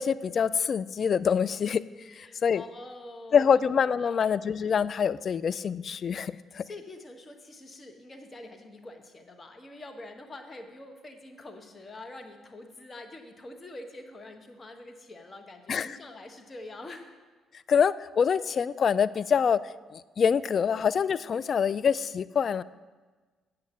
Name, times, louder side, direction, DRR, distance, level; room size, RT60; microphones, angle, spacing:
voice 1, 0.0-1.8 2.1-2.6 3.3-6.6 15.7-16.0 17.7-19.6 19.9-22.6, left 7 dB, 45° left, 15 dB, 0.3 m, -25 dB
voice 2, 2.1-3.6 4.0-4.4 6.6-17.1, left 2 dB, 30° left, 5 dB, 1.3 m, -45 dB
8.9 x 6.6 x 7.2 m, 1.4 s
figure-of-eight pair, 45°, 0 cm